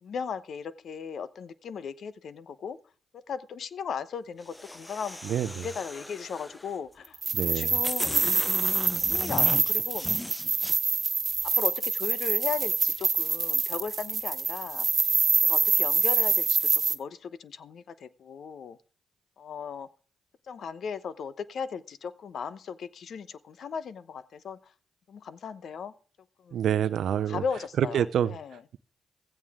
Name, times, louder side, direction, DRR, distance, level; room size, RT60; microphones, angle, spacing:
voice 1, 0.0-2.8 3.1-5.2 5.5-7.2 7.4-8.3 9.0-10.1 11.4-14.9 15.4-18.8 19.4-19.9 20.5-24.7 25.1-25.9 26.4-26.6 27.2-28.6, left 6 dB, 65° left, 1.0 m, -37 dB
sound 1, 4.4-6.8 7.4-7.5 7.8-10.8, left 1 dB, 15° left, 0.7 m, -37 dB
voice 2, 5.3-5.7 7.3-7.7 26.5-27.4 27.8-28.3, right 9 dB, 70° right, 0.6 m, -27 dB
sound 2, 7.1-17.0, right 5 dB, 45° right, 1.0 m, -26 dB
15.5 x 14.5 x 3.7 m
hypercardioid pair, 45°, 0 cm